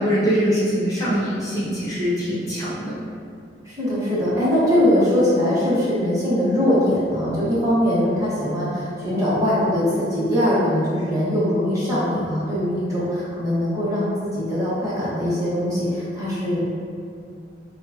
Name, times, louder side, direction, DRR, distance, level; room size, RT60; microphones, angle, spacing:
voice 1, 0.0-3.0, equal, 20° left, -9 dB, 0.6 m, -23 dB
voice 2, 3.6-16.7, equal, 20° right, -10 dB, 1.2 m, -21 dB
6.3 x 2.4 x 2.7 m, 2.4 s
head